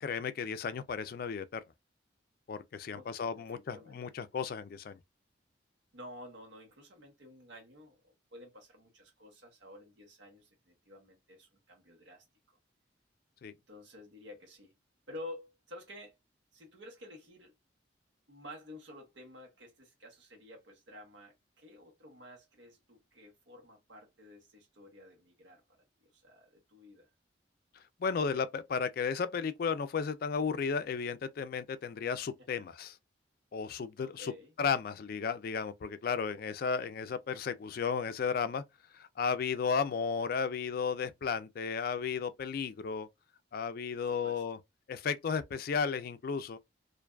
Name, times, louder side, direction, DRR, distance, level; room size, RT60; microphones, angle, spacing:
voice 1, 0.0-1.6 2.5-5.0 13.4-13.5 28.0-33.0 33.5-34.3 34.6-38.6 38.9-43.1 43.5-44.6 44.9-46.6, left 6 dB, 55° left, 0.3 m, -34 dB
voice 2, 2.9-4.0 5.9-12.6 13.7-14.7 15.1-16.2 16.5-17.5 18.3-25.6 26.0-27.1 34.0-34.5 44.0-44.4, left 1 dB, 80° right, 1.1 m, -51 dB
2.5 x 2.2 x 2.3 m
head